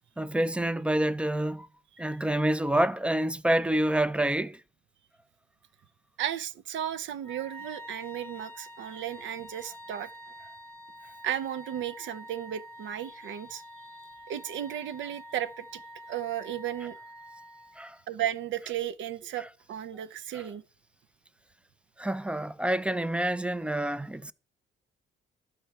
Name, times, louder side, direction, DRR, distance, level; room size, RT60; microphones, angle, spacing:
voice 1, 0.2-1.7 2.0-4.6 17.8-18.0 19.4-19.5 20.3-20.5 22.0-24.3, right 1 dB, 5° right, 0.3 m, -27 dB
voice 2, 6.2-10.1 11.2-13.6 14.3-15.8 16.1-17.0 18.1-20.6, right 11 dB, 70° right, 0.5 m, -34 dB
Wind instrument woodwind instrument, 7.2-18.0, equal, 10° left, 0.8 m, -47 dB
12.0 x 4.5 x 4.5 m
cardioid pair, 90°, 20 cm